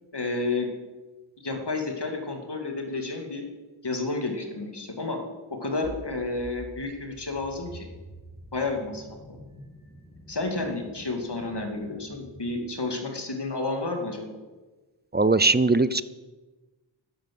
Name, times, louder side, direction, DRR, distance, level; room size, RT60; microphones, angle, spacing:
voice 1, 0.1-0.7 1.4-3.4 3.8-5.2 5.5-7.9 8.5-9.4 10.3-14.3, left 3 dB, 55° left, 3 dB, 2.6 m, -31 dB
sound 1, 5.8-12.7, equal, 10° left, 2.5 m, -47 dB
voice 2, 15.1-16.0, right 3 dB, 20° right, 15 dB, 0.5 m, -20 dB
12.0 x 10.0 x 7.8 m, 1.2 s
wide cardioid pair, 70°, 48 cm